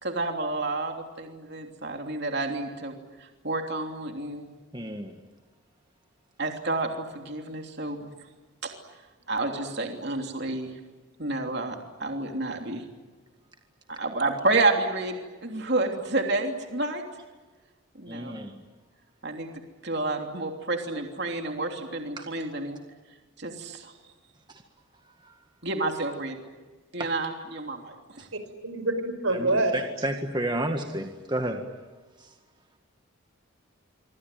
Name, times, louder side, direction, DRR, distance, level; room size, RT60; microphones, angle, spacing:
voice 1, 0.0-2.9 3.4-4.5 6.4-8.1 8.6-8.7 9.3-10.7 11.2-12.9 13.9-17.0 18.0-18.4 19.2-19.5 19.8-22.8 23.4-23.9 25.6-26.4 26.9-28.3, right 2 dB, 50° right, 3 dB, 3.1 m, -30 dB
voice 2, 4.7-5.1 18.1-18.5 22.2-22.3 24.5-24.6 25.2-25.3 27.0-27.1 29.3-31.6, right 1 dB, 20° right, 5 dB, 1.8 m, -31 dB
voice 3, 28.6-29.8, right 2 dB, 85° right, 9 dB, 5.1 m, -26 dB
26.0 x 25.0 x 9.2 m, 1.3 s
head